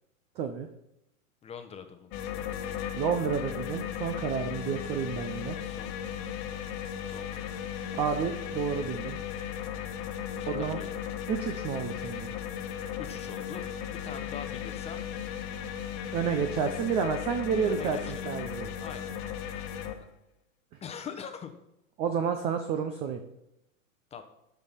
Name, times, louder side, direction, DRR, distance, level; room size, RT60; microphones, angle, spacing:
voice 1, 0.4-0.7 2.9-5.6 7.9-9.2 10.5-10.8 11.3-12.3 16.1-18.7 22.0-23.2, right 6 dB, 15° right, 7 dB, 0.4 m, -30 dB
voice 2, 1.4-2.3 4.9-5.1 5.6-6.1 6.5-6.6 7.0-7.6 10.2-10.9 13.0-15.0 17.6-18.3 18.8-19.1 20.8-21.5 24.1-24.2, left 7 dB, 15° left, 8 dB, 0.9 m, -43 dB
sound 1, 2.1-19.9, left 9 dB, 40° left, 1.3 m, -36 dB
13.0 x 5.5 x 5.6 m, 0.85 s
hypercardioid pair, 130°, 42 cm